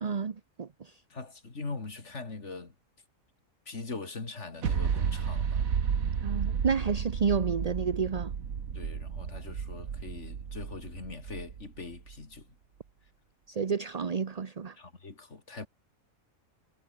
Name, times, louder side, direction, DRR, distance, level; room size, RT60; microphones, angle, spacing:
voice 1, 0.0-0.9 6.2-8.3 13.5-14.7, right 6 dB, 35° right, 0.8 m, -30 dB
voice 2, 1.1-2.7 3.7-5.6 8.7-12.5 14.8-15.7, left 3 dB, 55° left, 3.1 m, -41 dB
sound 1, 4.6-12.2, right 7 dB, 80° right, 1.9 m, -32 dB
omnidirectional pair, 1.4 m